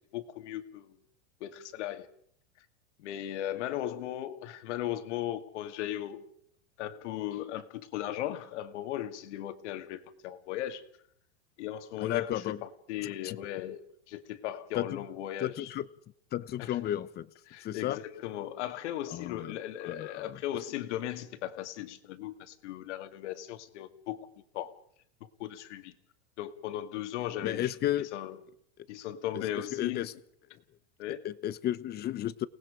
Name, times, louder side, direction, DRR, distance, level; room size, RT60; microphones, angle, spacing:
voice 1, 0.1-1.0 1.4-2.1 2.6-2.7 3.0-6.2 6.8-10.8 11.6-15.8 16.6-16.8 17.5-24.3 24.5-24.7 25.2-25.9 26.4-28.4 28.9-30.1 31.0-31.2, left 12 dB, 70° left, 9 dB, 2.2 m, -37 dB
voice 2, 12.0-12.6 13.2-13.4 14.7-14.9 15.4-15.9 16.3-17.3 17.6-18.0 19.1-19.6 19.8-20.4 27.4-28.1 29.3-29.4 29.7-30.1 31.2-32.5, left 12 dB, 25° left, 17 dB, 0.8 m, -33 dB
29.5 x 19.0 x 5.1 m, 0.66 s
supercardioid pair, 130°, 36 cm